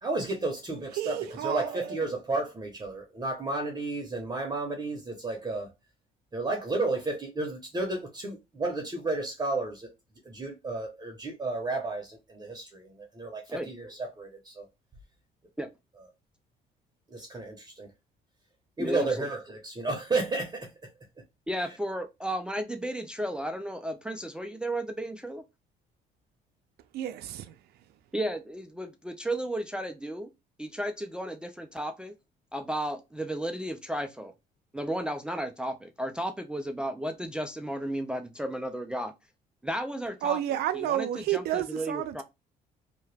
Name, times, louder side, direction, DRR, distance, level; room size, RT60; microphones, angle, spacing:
voice 1, 0.0-5.7 6.3-9.9 10.2-14.6 17.1-17.9 18.8-20.7, right 2 dB, 25° right, 0.8 m, -32 dB
voice 2, 1.0-2.0 26.9-27.6 40.2-42.2, right 11 dB, 70° right, 0.5 m, -31 dB
voice 3, 18.8-19.3 21.5-25.4 28.1-30.3 30.6-32.2 32.5-34.3 34.7-39.1 39.6-40.4 40.8-42.2, right 1 dB, 5° right, 0.3 m, -34 dB
2.8 x 2.2 x 3.2 m
cardioid pair, 110°, 17 cm